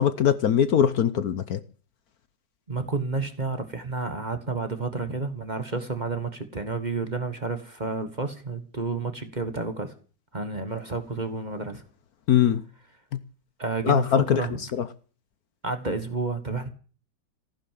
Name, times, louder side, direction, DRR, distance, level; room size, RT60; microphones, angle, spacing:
voice 1, 0.0-1.6 12.3-12.6 13.8-14.4, left 9 dB, 60° left, 1.2 m, -21 dB
voice 2, 2.7-9.9 10.3-11.8 13.6-14.6 15.6-16.7, right 3 dB, 25° right, 1.5 m, -30 dB
15.0 x 10.5 x 7.5 m
omnidirectional pair, 1.9 m